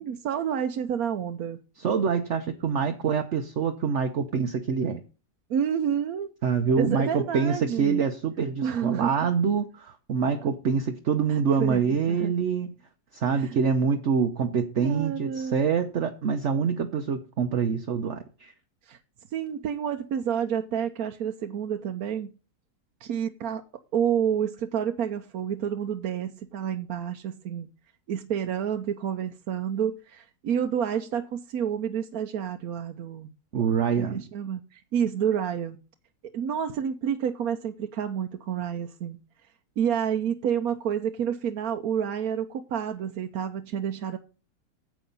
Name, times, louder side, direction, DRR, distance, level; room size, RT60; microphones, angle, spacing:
voice 1, 0.0-1.6 5.5-6.3 6.8-8.0 8.6-9.1 11.3-11.8 12.1-12.3 13.3-13.6 14.8-15.6 18.9-19.0 19.3-22.3 23.0-23.6 23.9-27.7 28.1-33.3 34.0-35.8 36.3-39.2 39.8-44.2, right 8 dB, 70° right, 1.2 m, -29 dB
voice 2, 1.8-5.0 6.4-12.8 13.1-18.5 33.5-34.2, right 6 dB, 55° right, 1.1 m, -25 dB
9.5 x 7.8 x 5.4 m
omnidirectional pair, 1.6 m